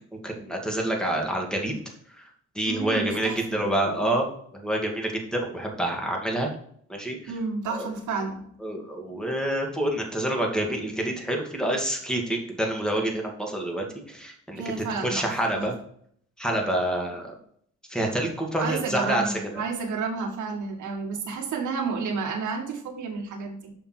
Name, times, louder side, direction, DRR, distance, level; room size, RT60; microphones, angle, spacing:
voice 1, 0.1-1.7 2.2-2.3 2.5-4.3 4.5-6.5 6.9-7.3 7.7-7.9 8.6-15.7 16.4-17.2 17.9-19.3, right 1 dB, ahead, 1 dB, 2.3 m, -27 dB
voice 2, 2.6-3.7 7.3-8.4 14.6-15.3 15.5-15.7 18.6-23.7, right 4 dB, 75° right, 2 dB, 2.1 m, -31 dB
6.9 x 5.8 x 4.5 m, 0.64 s
cardioid pair, 90°, 30 cm